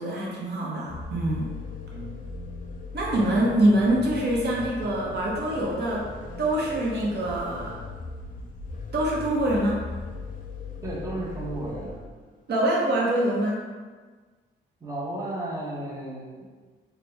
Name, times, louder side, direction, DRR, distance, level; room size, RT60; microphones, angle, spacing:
voice 1, 0.0-1.5 2.9-6.1 6.4-7.8 8.9-9.8 12.5-13.6, right 1 dB, 55° right, -3 dB, 0.8 m, -24 dB
sound 1, 0.9-12.1, left 3 dB, 45° left, 0.6 m, -38 dB
voice 2, 1.9-2.3 10.8-12.1 14.8-16.4, right 1 dB, 15° right, -4 dB, 0.9 m, -34 dB
4.3 x 2.2 x 3.3 m, 1.4 s
cardioid pair, 90°, 20 cm